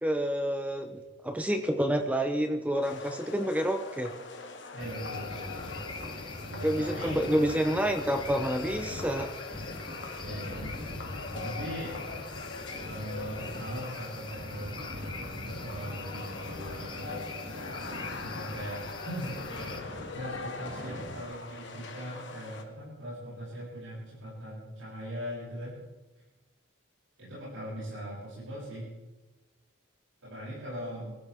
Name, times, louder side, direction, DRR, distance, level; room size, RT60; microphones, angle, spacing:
voice 1, 0.0-4.1 6.6-9.3, equal, 5° right, 6 dB, 0.8 m, -28 dB
sound 1, 2.8-22.6, left 3 dB, 60° left, 2.1 m, -42 dB
voice 2, 4.7-5.5 6.5-7.2 10.2-10.7 11.3-12.0 12.8-17.3 18.2-19.4 20.1-25.8 27.2-28.9 30.2-31.2, equal, 75° right, -8 dB, 7.6 m, -40 dB
sound 2, 4.8-19.8, left 5 dB, 25° left, 1.4 m, -45 dB
sound 3, 4.8-21.2, left 1 dB, 40° right, 4.3 m, -43 dB
24.0 x 15.5 x 3.7 m, 1.2 s
head